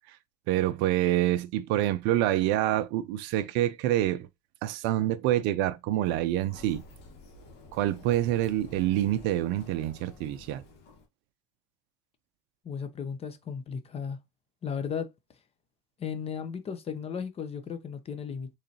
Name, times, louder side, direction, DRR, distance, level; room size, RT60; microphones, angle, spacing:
voice 1, 0.5-4.3 4.6-6.8 7.7-10.6, right 13 dB, 60° right, 0.5 m, -27 dB
Sliding door, 6.0-11.1, left 2 dB, 55° left, 1.4 m, -50 dB
voice 2, 12.6-14.2 14.6-15.1 16.0-18.5, left 6 dB, 30° left, 0.7 m, -35 dB
3.8 x 3.2 x 2.8 m
hypercardioid pair, 90°, 21 cm